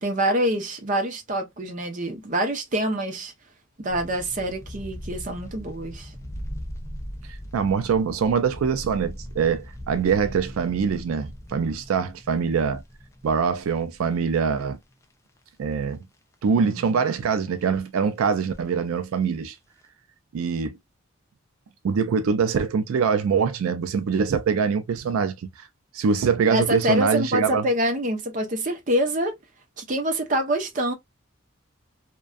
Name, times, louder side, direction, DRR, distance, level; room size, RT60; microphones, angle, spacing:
voice 1, 0.0-3.3 3.8-6.1 16.6-16.9 26.5-29.3 29.8-30.9, right 1 dB, 40° right, 0.6 m, -26 dB
sound 1, 3.9-15.4 15.7-15.8 16.3-17.2 17.5-17.6 17.9-19.3 19.6-19.9, equal, 15° left, 0.3 m, -40 dB
voice 2, 7.5-12.8 13.2-14.8 15.6-16.0 16.4-19.6 20.3-20.8 21.8-25.7 25.9-27.7, right 6 dB, 85° right, 0.4 m, -24 dB
2.5 x 2.2 x 2.2 m
head